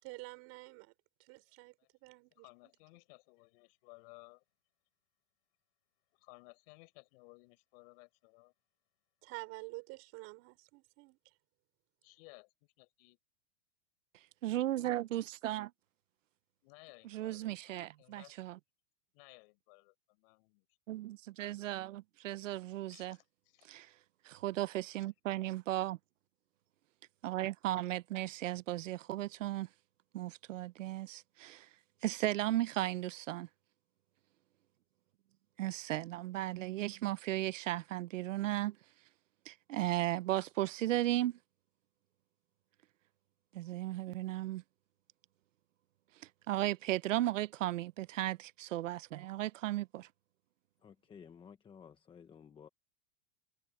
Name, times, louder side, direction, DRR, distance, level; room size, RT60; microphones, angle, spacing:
voice 1, 0.0-0.9 1.3-1.7 2.0-2.4 9.2-11.2, right 24 dB, 40° right, 4.9 m, -48 dB
voice 2, 1.4-1.9 2.3-4.4 6.1-8.5 12.0-13.2 16.6-18.3 19.1-20.7 22.9-23.7 25.0-25.1, left 32 dB, 50° left, 5.9 m, -59 dB
voice 3, 14.4-15.7 17.1-18.6 20.9-23.2 23.7-23.9 24.2-26.0 27.2-29.7 30.1-31.7 32.0-33.5 35.6-38.8 39.5-41.4 43.5-44.6 46.5-50.1, right 15 dB, 85° right, 0.9 m, -35 dB
voice 4, 50.8-52.7, left 7 dB, 15° left, 1.2 m, -55 dB
supercardioid pair, 145°, 37 cm